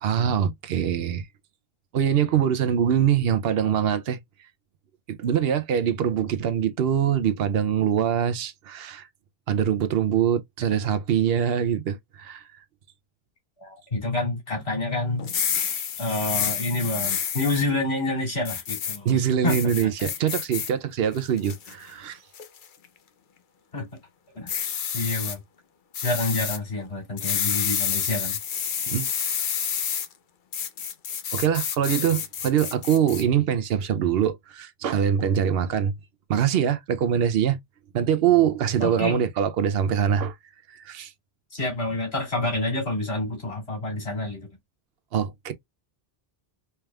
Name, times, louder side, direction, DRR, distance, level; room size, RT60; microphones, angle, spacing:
voice 1, 0.0-1.2 1.9-4.2 5.1-9.1 9.5-12.4 19.0-22.2 28.9-29.1 31.3-35.9 36.3-37.6 37.9-40.3 40.7-41.1 45.1-45.5, right 9 dB, 75° right, 0.8 m, -23 dB
voice 2, 13.6-15.3 16.0-19.9 23.7-23.9 24.3-24.5 24.9-25.4 26.0-28.4 38.8-39.2 41.5-44.5, left 2 dB, 85° left, 2.9 m, -28 dB
sound 1, 15.2-17.6 18.5-19.0 19.5-20.7 21.2-21.7 22.3-22.7 24.5-25.4 25.9-26.6 27.2-30.1 30.5-33.2, left 8 dB, 55° left, 0.7 m, -29 dB
4.5 x 3.4 x 2.3 m
omnidirectional pair, 1.0 m